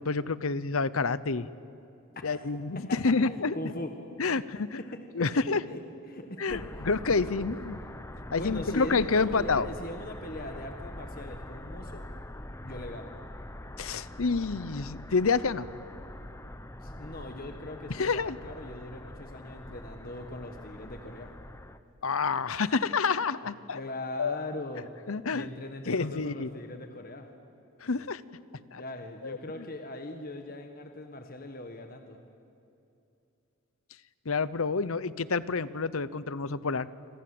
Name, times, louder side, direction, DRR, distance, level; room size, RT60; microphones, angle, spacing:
voice 1, 0.0-1.5 2.2-3.7 4.2-4.8 5.1-5.6 6.4-6.6 6.9-7.8 8.3-9.7 13.8-15.7 17.9-18.4 22.0-23.8 24.2-24.4 25.1-25.5 25.9-26.5 27.8-28.2 28.7-28.8 29.2-29.7 34.3-36.9, left 4 dB, 70° left, 17 dB, 0.8 m, -28 dB
voice 2, 2.1-2.5 2.9-3.9 4.3-4.4 5.7-5.8 6.1-6.9 8.3-12.0 12.6-13.1 16.8-21.3 23.7-24.9 25.3-27.3 28.7-32.2, left 1 dB, 40° left, 5 dB, 1.6 m, -40 dB
sound 1, 6.5-21.8, left 1 dB, 10° left, 0.9 m, -43 dB
27.0 x 26.0 x 7.9 m, 2.7 s
head